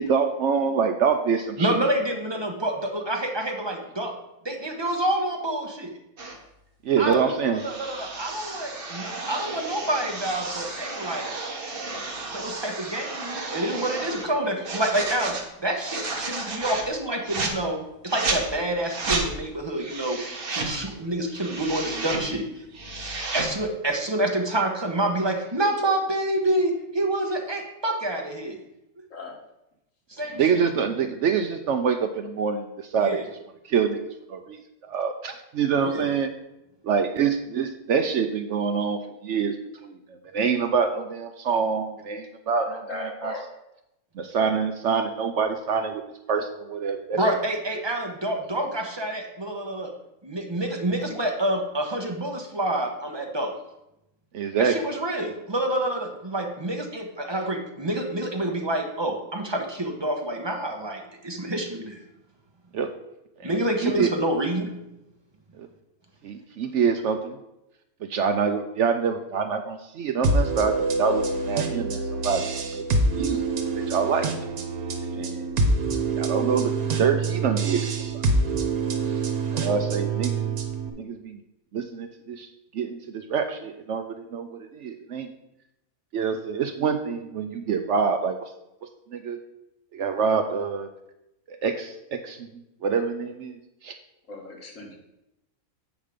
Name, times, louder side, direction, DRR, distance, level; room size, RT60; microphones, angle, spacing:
voice 1, 0.0-1.8 6.8-7.6 30.4-33.2 33.7-34.0 34.3-34.6 34.9-36.3 36.8-39.6 39.8-43.3 44.2-47.2 54.3-54.8 62.7-62.9 63.4-63.5 63.8-64.1 65.6-65.7 66.2-67.4 68.0-72.9 73.2-74.3 75.1-75.5 76.2-78.2 79.5-80.5 81.0-81.4 81.7-82.5 82.7-85.3 86.1-88.5 88.8-89.4 89.9-90.9 91.5-92.4 92.8-93.6 93.8-94.0, right 6 dB, 65° right, 8 dB, 0.8 m, -26 dB
voice 2, 1.6-4.1 4.4-5.9 7.0-11.3 12.2-20.2 20.5-22.7 23.3-28.6 30.1-30.6 33.0-33.3 35.8-36.1 47.2-49.9 50.2-53.5 54.6-62.0 63.4-64.7, right 1 dB, 20° right, 2 dB, 1.0 m, -27 dB
sound 1, 6.2-6.4 7.5-14.3 14.6-15.4 15.8-16.9 17.2-17.5 18.1-18.4 18.8-19.3 19.8-20.7 21.2-22.2 22.6-23.5, right 3 dB, 40° right, 1.3 m, -32 dB
voice 3, 6.9-7.3 14.1-14.3 29.1-29.3 42.6-43.4 94.3-94.9, left 2 dB, 60° left, 0 dB, 2.0 m, -37 dB
sound 2, 70.2-80.9, right 3 dB, 85° right, 1.5 m, -26 dB
8.2 x 5.1 x 5.1 m, 0.88 s
omnidirectional pair, 1.5 m